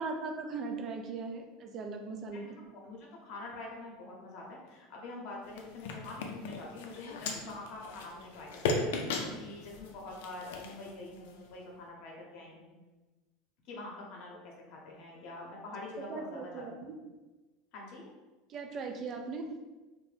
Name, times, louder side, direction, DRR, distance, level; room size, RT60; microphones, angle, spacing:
voice 1, 0.0-2.4 9.1-9.6 16.1-17.0 18.5-19.5, right 4 dB, 35° right, 4 dB, 0.3 m, -39 dB
voice 2, 2.3-12.7 13.6-16.9 17.7-18.1, left 2 dB, 55° left, -2 dB, 0.8 m, -46 dB
sound 1, 5.4-11.5, left 3 dB, 85° left, 0.4 m, -37 dB
2.6 x 2.1 x 3.3 m, 1.2 s
supercardioid pair, 150°, 0 cm